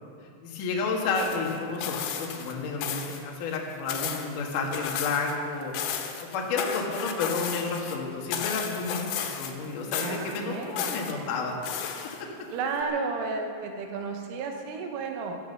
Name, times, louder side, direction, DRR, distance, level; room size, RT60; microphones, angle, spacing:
voice 1, 0.4-12.3, left 4 dB, 55° left, -1 dB, 2.9 m, -31 dB
sound 1, 1.2-2.5 2.8-3.2 3.5-5.4 5.6-8.0 8.3-9.7 9.9-11.1 11.6-12.4 12.8-12.9, left 8 dB, 85° left, 3.8 m, -34 dB
voice 2, 10.0-11.0 12.5-15.4, right 4 dB, 90° right, 3 dB, 3.8 m, -32 dB
15.5 x 12.5 x 6.8 m, 2.5 s
omnidirectional pair, 5.6 m